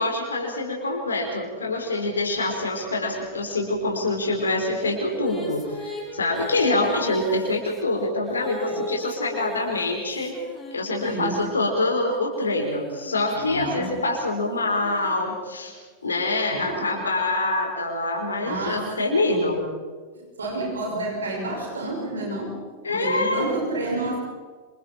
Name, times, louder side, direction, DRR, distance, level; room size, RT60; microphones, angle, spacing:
voice 1, 0.0-10.3 10.7-15.8 16.0-19.6 22.8-23.5, left 2 dB, 75° left, 1 dB, 4.5 m, -25 dB
Female singing, 4.4-11.4 12.1-15.8, left 2 dB, 15° left, 5.2 m, -39 dB
voice 2, 11.0-11.4 13.3-14.0 16.5-17.0 18.4-18.9 19.3-19.5 20.4-22.6 22.9-24.2, right 2 dB, 70° right, -1 dB, 5.8 m, -30 dB
27.5 x 27.0 x 4.5 m, 1.5 s
figure-of-eight pair, 90°, 0 cm